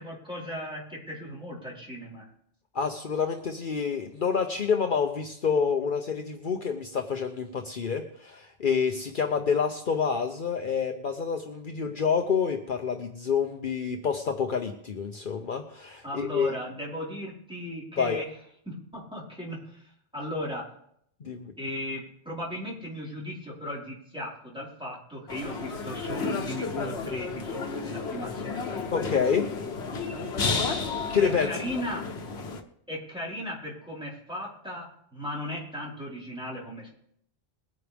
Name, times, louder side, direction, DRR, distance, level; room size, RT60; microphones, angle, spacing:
voice 1, 0.0-2.3 16.0-18.3 18.6-20.6 21.6-28.8 31.2-32.0 32.9-36.9, left 1 dB, 5° right, -6 dB, 4.6 m, -37 dB
voice 2, 2.7-16.5 18.0-18.2 21.2-21.5 28.9-29.5 31.1-31.5, left 6 dB, 55° left, 4 dB, 1.0 m, -28 dB
sound 1, 25.3-32.6, left 4 dB, 85° left, 1.3 m, -32 dB
21.0 x 9.7 x 3.5 m, 0.70 s
omnidirectional pair, 1.0 m